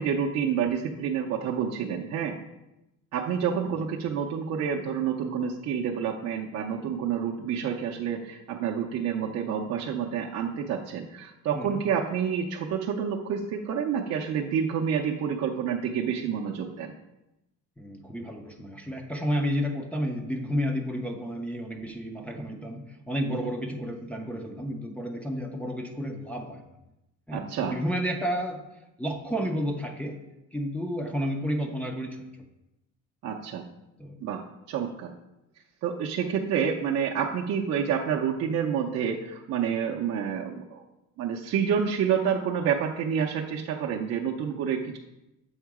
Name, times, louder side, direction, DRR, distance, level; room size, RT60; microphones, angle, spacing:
voice 1, 0.0-2.3 3.1-16.9 23.3-23.5 27.3-27.8 33.2-33.6 34.2-34.4 34.7-35.1 35.8-40.8 41.2-45.0, right 7 dB, 50° right, -1 dB, 0.5 m, -28 dB
voice 2, 17.8-26.7 27.3-28.7 29.0-30.2 30.5-32.2 34.0-34.2, equal, 5° left, 0 dB, 0.4 m, -31 dB
7.2 x 3.7 x 4.7 m, 0.92 s
cardioid pair, 175°, 33 cm